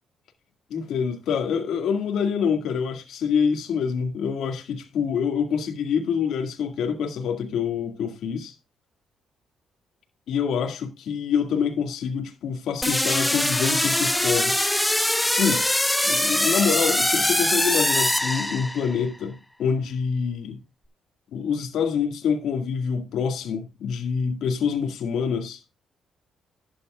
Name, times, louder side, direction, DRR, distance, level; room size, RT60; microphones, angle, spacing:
voice 1, 0.7-8.5 10.3-14.7 15.4-15.7 16.0-20.6 21.3-25.6, left 6 dB, 75° left, 2.0 m, -26 dB
sound 1, 12.8-19.0, left 1 dB, 5° left, 1.0 m, -23 dB
11.5 x 9.1 x 2.4 m
cardioid pair, 90°, 0 cm